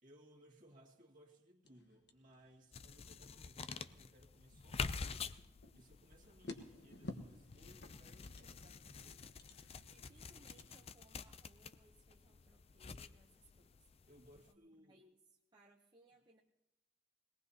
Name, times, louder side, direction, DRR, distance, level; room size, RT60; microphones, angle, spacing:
voice 1, 0.0-5.2 5.7-9.3 14.1-15.0, equal, 45° right, -1 dB, 2.2 m, -64 dB
sound 1, 1.6-10.9, left 2 dB, 65° left, 1.2 m, -55 dB
sound 2, 2.7-14.5, left 5 dB, 35° left, 0.4 m, -48 dB
voice 2, 9.8-13.9 14.3-16.4, right 2 dB, 25° right, -2 dB, 0.8 m, -68 dB
22.0 x 18.5 x 2.8 m, 0.94 s
head